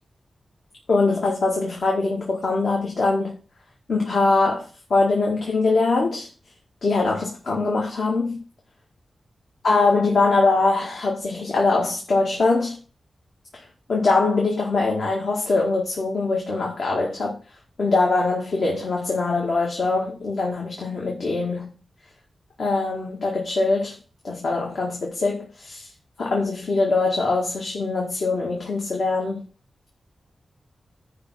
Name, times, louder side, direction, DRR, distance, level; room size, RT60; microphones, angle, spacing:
voice 1, 0.9-3.4 3.9-6.3 6.8-8.4 9.6-12.8 13.5-13.6 13.9-17.4 17.8-21.7 22.6-24.0 24.2-25.9 26.2-29.4, left 3 dB, 65° left, 2.0 m, -22 dB
10.5 x 3.6 x 6.3 m
wide cardioid pair, 105°, 0 cm